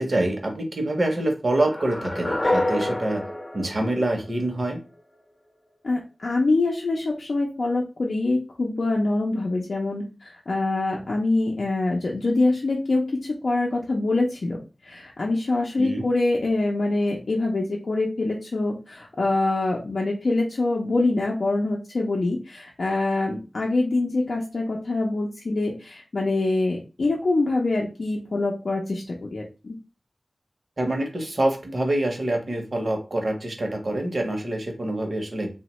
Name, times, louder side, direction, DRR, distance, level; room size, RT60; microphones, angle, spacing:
voice 1, 0.0-3.2 3.5-4.8 15.8-16.1 30.8-35.5, right 1 dB, 55° right, 4 dB, 0.7 m, -26 dB
sound 1, 1.6-4.7, left 1 dB, 35° left, 0.7 m, -28 dB
voice 2, 5.8-14.6 14.8-29.7, left 2 dB, 75° left, -2 dB, 0.5 m, -25 dB
3.0 x 2.1 x 2.9 m, 0.32 s
wide cardioid pair, 75°, 0 cm